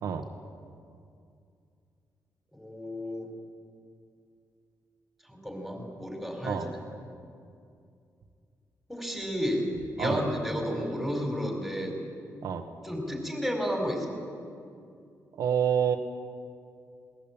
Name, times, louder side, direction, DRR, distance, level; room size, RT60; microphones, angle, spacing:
voice 1, 2.5-3.3 5.3-6.8 8.9-12.0 12.8-14.1, equal, ahead, 1 dB, 4.8 m, -32 dB
voice 2, 15.4-16.0, right 8 dB, 75° right, 5 dB, 1.4 m, -27 dB
20.5 x 19.5 x 8.9 m, 2.4 s
cardioid pair, 135°, 6 cm